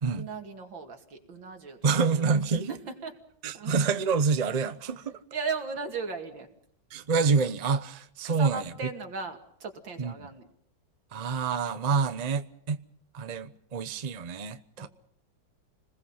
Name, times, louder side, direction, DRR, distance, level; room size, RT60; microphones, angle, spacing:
voice 1, 0.2-1.8 2.5-3.1 3.5-3.8 5.3-6.5 8.2-10.5 14.8-14.9, right 4 dB, 85° right, 3.1 m, -37 dB
voice 2, 1.8-2.7 3.4-5.2 6.9-8.7 10.0-10.1 11.1-12.8 13.1-14.9, right 5 dB, 30° right, 0.7 m, -27 dB
29.5 x 21.0 x 5.8 m
omnidirectional pair, 2.0 m